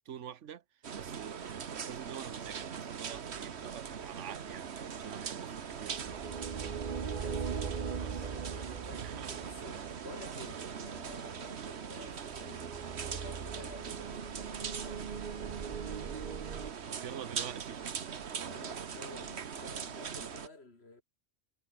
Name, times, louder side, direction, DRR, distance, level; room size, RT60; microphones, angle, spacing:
voice 1, 0.1-0.6 0.9-4.7 5.0-6.3 8.0-8.2 8.9-9.4 11.9-12.2 16.9-17.8, right 9 dB, 85° right, 1.3 m, -46 dB
sound 1, 0.8-20.5, right 7 dB, 65° right, 1.4 m, -41 dB
sound 2, 5.7-16.7, right 6 dB, 45° right, 1.0 m, -41 dB
voice 2, 7.1-12.7 13.0-15.1 18.5-21.0, left 3 dB, 60° left, 3.6 m, -51 dB
omnidirectional pair, 1.2 m